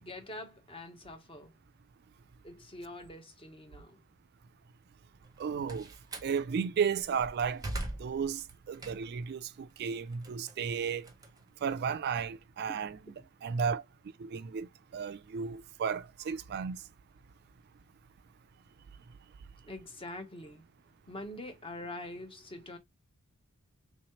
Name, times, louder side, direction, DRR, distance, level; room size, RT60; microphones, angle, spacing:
voice 1, 0.0-1.6 2.4-4.0 13.1-13.3 19.6-20.7 21.1-22.8, left 1 dB, 25° left, 0.8 m, -45 dB
Slam, 5.2-6.4 6.9-9.3 9.7-12.1, right 1 dB, 15° right, 0.7 m, -42 dB
voice 2, 5.4-5.9 6.2-7.6 8.0-11.1 11.6-13.0 13.4-13.8 14.2-14.7 14.9-16.8, right 6 dB, 45° right, 0.3 m, -33 dB
3.5 x 3.1 x 2.8 m
head